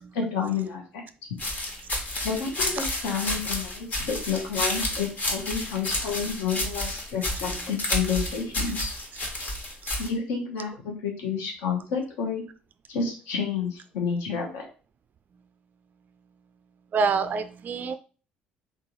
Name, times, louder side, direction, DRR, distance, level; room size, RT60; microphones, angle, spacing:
voice 1, 0.1-0.8 2.2-8.9 10.0-12.4 12.9-14.6, left 6 dB, 65° left, 1.1 m, -30 dB
sound 1, 1.4-10.1, left 1 dB, 35° left, 1.3 m, -30 dB
voice 2, 7.3-7.7 16.9-18.0, right 5 dB, 35° right, 0.3 m, -27 dB
3.7 x 3.6 x 3.0 m
figure-of-eight pair, 50°, 5 cm